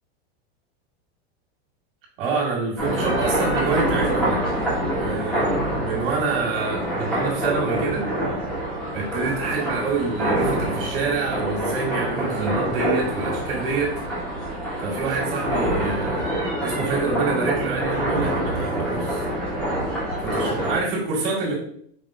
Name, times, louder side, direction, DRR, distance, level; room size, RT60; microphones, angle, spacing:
voice 1, 2.2-4.4 4.9-8.1 8.9-13.9 14.8-16.3 16.6-19.2 20.2-21.5, right 4 dB, 60° right, -3 dB, 1.8 m, -26 dB
sound 1, 2.8-20.8, right 1 dB, 5° left, 1.2 m, -26 dB
5.0 x 3.6 x 2.5 m, 0.64 s
supercardioid pair, 170°, 31 cm